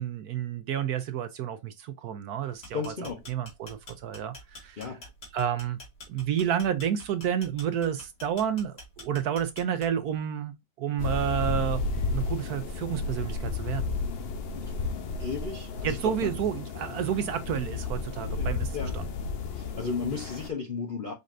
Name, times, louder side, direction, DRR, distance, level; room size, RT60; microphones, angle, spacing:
voice 1, 0.0-2.9 3.3-5.0 5.3-5.8 6.1-13.9 15.8-19.1, right 9 dB, 70° right, 1.0 m, -30 dB
sound 1, 2.5-10.1, left 2 dB, 65° left, 2.8 m, -46 dB
voice 2, 2.7-3.2 4.8-5.0 14.5-14.7 15.2-16.3 18.3-19.0 19.6-21.1, left 5 dB, 45° left, 0.7 m, -34 dB
sound 2, 11.0-20.5, left 3 dB, 85° left, 0.5 m, -32 dB
5.3 x 3.7 x 2.5 m
omnidirectional pair, 1.9 m